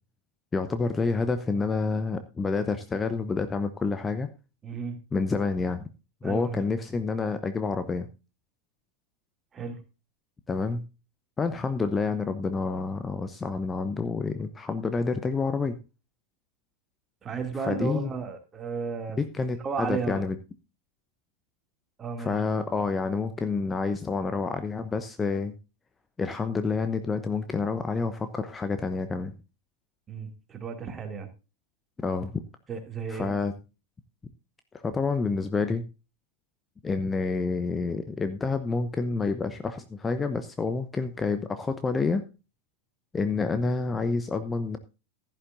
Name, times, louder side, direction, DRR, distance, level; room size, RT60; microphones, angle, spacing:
voice 1, 0.5-4.3 5.1-5.8 6.2-8.1 10.5-10.8 11.4-15.7 17.6-18.1 19.2-20.4 22.2-25.5 26.2-29.3 32.0-32.4 33.1-33.5 34.7-35.8 36.8-42.2 43.1-44.8, left 4 dB, 15° left, 10 dB, 0.8 m, -28 dB
voice 2, 4.6-5.0 6.2-6.6 9.5-9.8 17.2-19.2 19.6-20.2 22.0-22.4 30.1-31.3 32.7-33.4, right 5 dB, 20° right, 5 dB, 2.6 m, -33 dB
15.5 x 11.0 x 2.6 m, 0.31 s
figure-of-eight pair, 90°, 0 cm